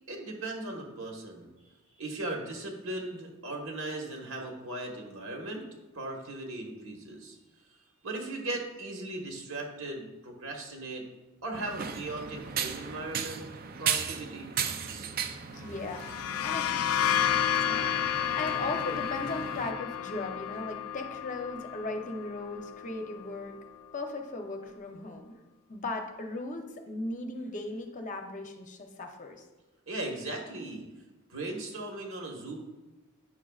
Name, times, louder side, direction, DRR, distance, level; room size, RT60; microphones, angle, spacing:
voice 1, 0.1-1.5 2.0-5.7 5.9-7.4 7.7-7.8 8.0-11.0 11.4-13.4 13.8-15.1 29.9-30.8 31.3-32.6, right 2 dB, 70° right, 0 dB, 1.4 m, -38 dB
sound 1, 11.5-19.7, right 7 dB, 45° right, 0.4 m, -36 dB
voice 2, 15.5-16.1 16.4-16.7 17.6-23.5 23.9-25.4 25.7-29.4, left 2 dB, 35° left, 4 dB, 0.6 m, -37 dB
sound 2, 15.8-23.4, left 10 dB, 80° left, 0.3 m, -31 dB
9.2 x 6.2 x 2.4 m, 1.1 s
head